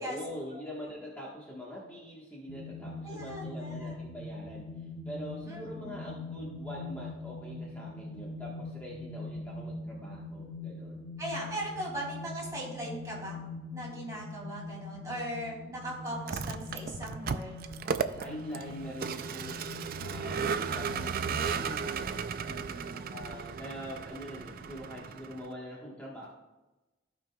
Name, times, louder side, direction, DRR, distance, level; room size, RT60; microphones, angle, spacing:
voice 1, 0.0-11.0 17.8-22.2 22.9-26.3, equal, 10° left, -5 dB, 1.3 m, -44 dB
sound 1, 2.5-21.9, left 2 dB, 45° left, 1.5 m, -43 dB
voice 2, 3.0-4.0 5.5-6.3 11.2-13.4 13.7-17.5 22.4-23.0, right 1 dB, 20° right, -4 dB, 2.7 m, -39 dB
Vehicle, 16.1-25.5, right 6 dB, 55° right, 0.4 m, -35 dB
15.5 x 5.2 x 2.3 m, 1.1 s
head